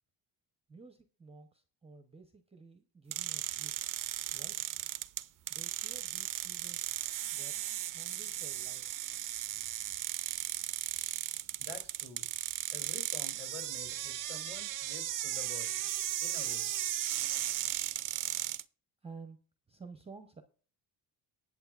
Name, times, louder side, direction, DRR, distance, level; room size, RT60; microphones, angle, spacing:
voice 1, 0.7-4.0 4.3-4.6 5.5-6.9 7.3-9.1 19.0-19.4 19.7-20.4, right 4 dB, 15° right, 6 dB, 0.8 m, -53 dB
sound 1, 3.1-18.6, right 13 dB, 45° right, 0.5 m, -36 dB
voice 2, 11.6-12.3 12.7-15.9 16.2-16.7, left 4 dB, 35° left, 1 dB, 2.9 m, -49 dB
19.5 x 7.4 x 2.4 m, 0.43 s
cardioid pair, 120°, 43 cm